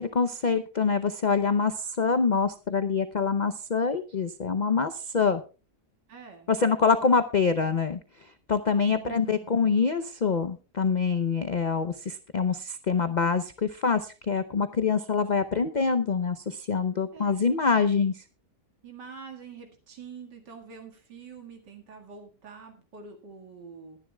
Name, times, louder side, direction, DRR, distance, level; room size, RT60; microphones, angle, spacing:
voice 1, 0.0-5.4 6.5-18.2, left 5 dB, 55° left, 10 dB, 0.4 m, -25 dB
voice 2, 6.1-6.5 8.8-9.5 17.1-17.4 18.8-24.0, right 6 dB, 85° right, 2 dB, 2.5 m, -45 dB
20.5 x 10.5 x 2.3 m, 0.33 s
omnidirectional pair, 1.8 m